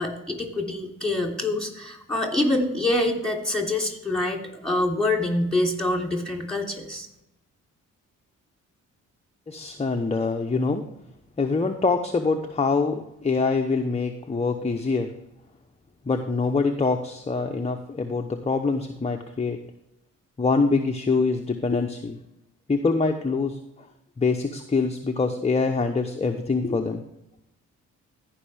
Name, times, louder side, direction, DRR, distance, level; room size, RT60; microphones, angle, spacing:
voice 1, 0.0-7.1, left 2 dB, ahead, 2 dB, 3.1 m, -26 dB
voice 2, 9.5-10.8 11.4-15.1 16.1-19.6 20.4-22.2 22.7-23.9 24.2-27.0, left 4 dB, 20° left, 4 dB, 0.9 m, -24 dB
15.0 x 5.5 x 3.4 m, 0.84 s
supercardioid pair, 65°, 32 cm